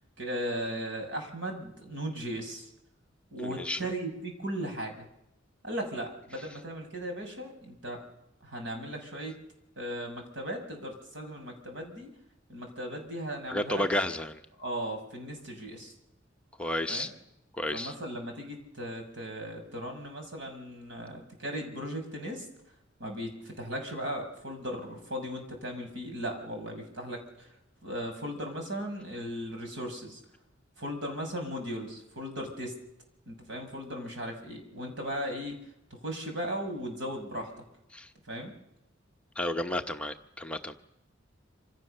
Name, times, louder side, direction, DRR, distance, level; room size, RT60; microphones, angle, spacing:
voice 1, 0.2-2.7 3.3-5.1 5.6-8.0 8.4-9.3 9.8-12.1 12.5-13.8 14.6-15.9 16.9-17.1 17.7-22.5 23.0-27.5 27.8-30.2 30.8-32.8 33.3-35.6 35.9-37.5 38.3-38.5, equal, 65° right, 3 dB, 6.5 m, -37 dB
voice 2, 3.4-3.9 6.3-6.5 13.5-14.4 16.6-17.1 17.5-17.9 37.9-38.1 39.3-40.7, left 1 dB, 5° left, 4 dB, 1.0 m, -32 dB
27.0 x 26.5 x 6.8 m, 0.84 s
head